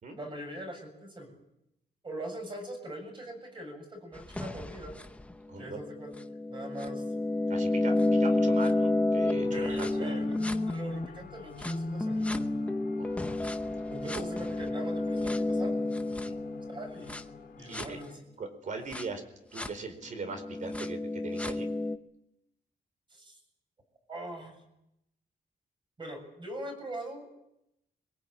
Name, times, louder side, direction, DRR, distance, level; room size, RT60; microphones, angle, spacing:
voice 1, 0.2-1.3 2.0-4.9 5.6-6.1 6.5-7.0 9.5-10.3 10.7-12.5 13.9-15.8 16.7-17.2 17.6-18.2 23.1-23.4 24.1-24.6 26.0-27.3, right 1 dB, 30° right, 3 dB, 7.3 m, -42 dB
sound 1, 4.2-11.1 11.6-17.3 17.7-17.9 18.9-19.0 19.6-19.7 20.2-22.0, left 2 dB, 10° left, 0.9 m, -30 dB
voice 2, 5.5-5.8 7.5-10.3 13.0-13.3 14.1-14.2 16.2-16.4 17.7-18.0 18.4-19.2 19.5-21.7, right 4 dB, 50° right, 8 dB, 4.2 m, -40 dB
sound 2, 9.3-18.2, left 8 dB, 75° left, 2.2 m, -49 dB
23.5 x 22.0 x 8.8 m, 0.84 s
wide cardioid pair, 170°, 17 cm